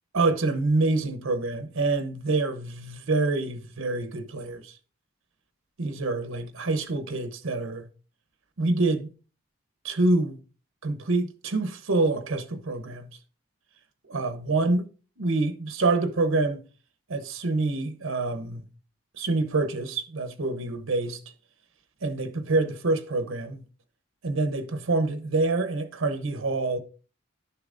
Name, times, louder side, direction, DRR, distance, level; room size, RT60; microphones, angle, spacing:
voice 1, 0.1-4.7 5.8-7.8 8.6-9.1 9.8-10.4 10.8-13.1 14.1-14.9 15.2-16.6 17.1-18.6 19.2-21.2 22.0-23.6 24.2-26.8, right 3 dB, 80° right, 0.8 m, -26 dB
11.0 x 6.8 x 2.5 m
head